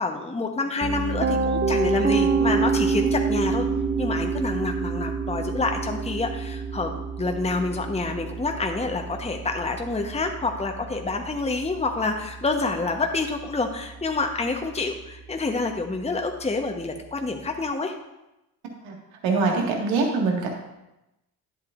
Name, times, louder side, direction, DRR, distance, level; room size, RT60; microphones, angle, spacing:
voice 1, 0.0-3.7 4.0-6.9 7.2-17.9, left 3 dB, 15° left, 3 dB, 1.1 m, -27 dB
Piano, 0.8-12.7, right 4 dB, 20° right, 0.6 m, -27 dB
voice 2, 19.2-20.5, right 4 dB, 65° right, 0 dB, 2.0 m, -23 dB
11.0 x 7.9 x 2.6 m, 0.94 s
hypercardioid pair, 50°, 50 cm